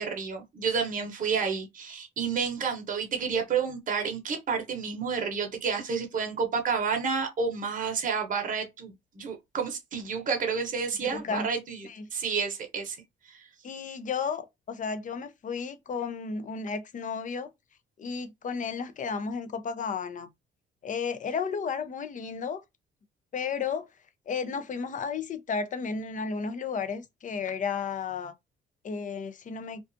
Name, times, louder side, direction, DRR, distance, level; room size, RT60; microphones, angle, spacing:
voice 1, 0.0-13.0 13.3-13.5, right 5 dB, 40° right, 0.8 m, -30 dB
voice 2, 11.0-11.5 11.8-12.0 13.6-17.5 18.0-20.3 20.8-22.6 23.3-23.9 24.3-28.3 28.8-29.8, left 5 dB, 40° left, 0.5 m, -33 dB
2.4 x 2.3 x 2.5 m
cardioid pair, 90°, 20 cm